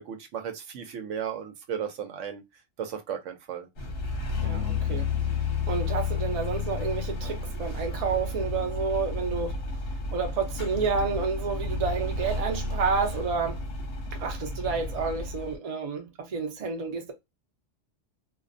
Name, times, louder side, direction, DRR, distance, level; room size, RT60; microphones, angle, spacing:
voice 1, 0.0-2.4 2.8-3.7, right 8 dB, 80° right, 0.9 m, -35 dB
sound 1, 3.8-15.6, left 3 dB, 60° left, 0.9 m, -31 dB
voice 2, 4.4-5.1 5.7-9.6 10.1-13.6 14.1-17.1, right 5 dB, 40° right, 0.5 m, -30 dB
2.4 x 2.0 x 2.5 m
omnidirectional pair, 1.3 m